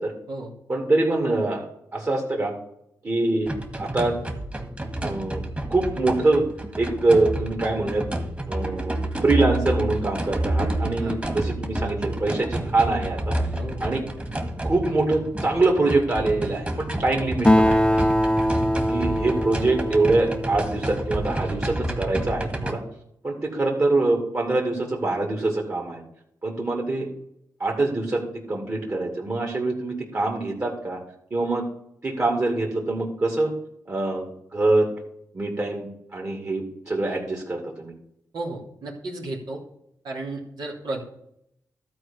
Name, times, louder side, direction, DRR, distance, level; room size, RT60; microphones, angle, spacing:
voice 1, 0.7-1.6 1.9-2.5 3.0-3.5 3.8-4.2 5.0-5.4 5.7-6.4 6.7-8.0 8.5-13.3 13.8-14.0 14.6-17.8 18.9-22.8 23.2-26.0 26.4-27.1 27.6-28.2 28.5-31.0 31.3-31.7 32.0-33.5 33.9-34.9 35.3-35.9 36.1-37.9, right 2 dB, 40° right, -1 dB, 2.6 m, -24 dB
sound 1, 3.5-22.7, right 1 dB, 20° right, 2.0 m, -29 dB
Acoustic guitar, 17.5-21.3, left 1 dB, 15° left, 0.7 m, -22 dB
voice 2, 38.3-39.6 40.0-41.0, right 2 dB, 80° right, -2 dB, 2.9 m, -33 dB
12.5 x 4.5 x 7.2 m, 0.75 s
cardioid pair, 55°, 7 cm